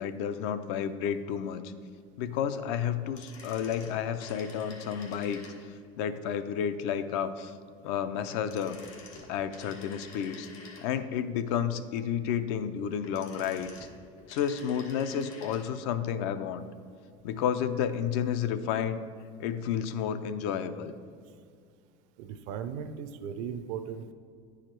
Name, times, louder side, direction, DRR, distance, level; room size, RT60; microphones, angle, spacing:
voice 1, 0.0-1.7 2.2-5.5 6.0-7.5 7.8-8.8 9.3-10.5 10.8-13.7 14.3-16.7 17.2-19.0 19.4-20.9, left 8 dB, 60° left, 11 dB, 0.5 m, -31 dB
sound 1, 3.0-5.9 8.3-11.2 12.8-15.7 15.9-16.0, left 3 dB, 90° left, 1.5 m, -49 dB
voice 2, 22.2-24.1, right 7 dB, 50° right, 9 dB, 0.5 m, -37 dB
9.7 x 4.9 x 4.5 m, 2.1 s
cardioid pair, 160°, 16 cm